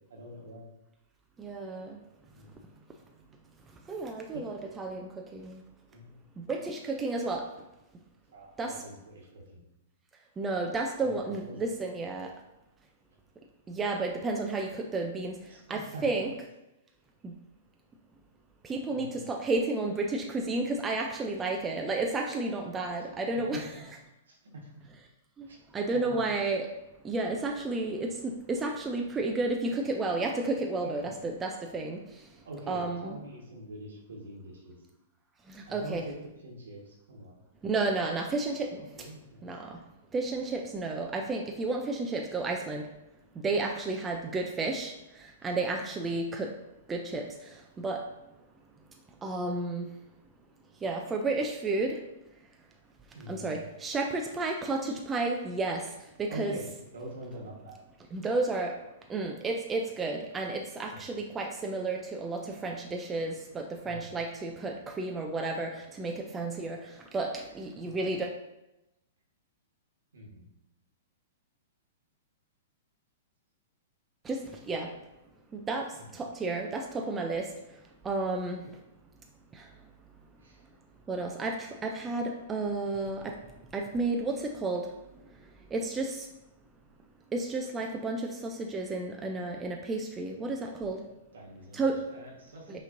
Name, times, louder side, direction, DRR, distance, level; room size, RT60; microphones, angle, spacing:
voice 1, 0.1-0.7 2.3-2.5 4.3-4.4 5.9-6.1 8.3-9.6 11.0-11.5 15.5-16.0 18.9-19.2 23.4-23.7 24.3-24.9 25.5-25.6 25.9-26.3 30.8-31.3 32.4-34.8 35.7-36.0 36.4-37.3 38.8-39.5 53.1-53.6 56.3-57.8 60.9-61.0 63.8-64.1 67.8-67.9 70.1-70.4 75.9-76.1 80.4-80.6 91.3-92.8, right 1 dB, 90° right, -1 dB, 1.3 m, -45 dB
voice 2, 1.4-2.0 3.9-5.6 6.4-7.4 8.6-8.8 10.4-12.3 13.7-15.4 15.7-16.3 17.2-17.3 18.7-23.7 25.4-25.5 25.7-26.7 27.0-32.0 32.7-33.2 35.7-36.0 37.6-38.8 39.4-39.8 40.1-42.9 43.4-44.9 45.4-46.5 46.9-47.3 47.8-48.0 49.2-49.9 50.8-52.0 53.3-55.8 56.2-56.6 58.1-58.7 59.1-66.8 67.1-68.3 74.3-74.4 74.7-74.9 75.5-75.9 76.1-77.5 78.0-78.6 81.1-83.3 83.7-84.9 85.7-86.2 87.3-91.0 91.7-92.0 92.7-92.8, right 3 dB, 15° right, 2 dB, 0.4 m, -32 dB
5.6 x 3.0 x 2.6 m, 0.92 s
hypercardioid pair, 140°, 0 cm